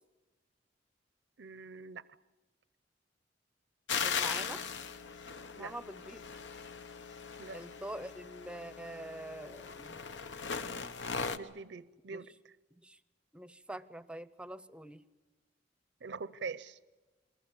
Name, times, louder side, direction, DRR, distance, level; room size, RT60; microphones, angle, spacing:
voice 1, 1.4-2.0 5.6-5.7 7.4-7.6 11.3-12.3 16.0-16.8, right 4 dB, 70° right, 0.7 m, -43 dB
sound 1, 3.9-11.4, left 6 dB, 75° left, 0.9 m, -39 dB
voice 2, 3.9-4.6 5.5-6.2 7.5-10.0 12.1-12.2 12.7-13.0 13.3-15.1, right 1 dB, 5° right, 0.7 m, -45 dB
27.5 x 21.5 x 7.2 m
head